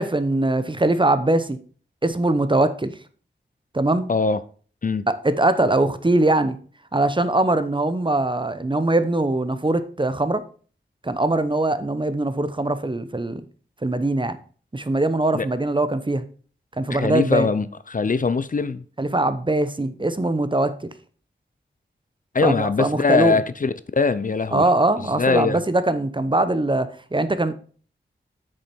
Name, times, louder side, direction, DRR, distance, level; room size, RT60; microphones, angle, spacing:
voice 1, 0.0-1.6 2.0-2.9 3.7-4.1 5.1-6.6 6.9-10.4 11.0-13.4 13.8-14.4 14.7-16.2 16.8-17.5 19.0-20.8 22.4-23.4 24.5-27.5, right 2 dB, 25° right, 0.9 m, -22 dB
voice 2, 4.1-4.4 4.8-5.1 15.3-15.5 16.9-18.8 22.3-24.6 25.2-25.6, left 4 dB, 45° left, 0.6 m, -22 dB
8.2 x 6.4 x 4.5 m
cardioid pair, 45°, 19 cm